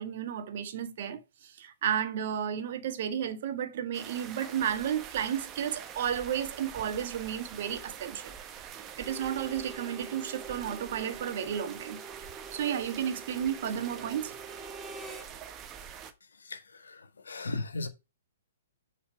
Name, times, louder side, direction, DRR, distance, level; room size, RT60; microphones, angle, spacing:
voice 1, 0.0-8.4 9.0-12.0 12.5-14.3, right 9 dB, 50° right, 1.6 m, -33 dB
sound 1, 3.9-16.1, right 8 dB, 25° right, 1.2 m, -45 dB
Harmonica, 9.0-15.3, right 4 dB, 10° right, 1.9 m, -46 dB
voice 2, 16.4-17.9, left 3 dB, 75° left, 1.5 m, -37 dB
7.5 x 5.6 x 4.7 m
figure-of-eight pair, 125°, 0 cm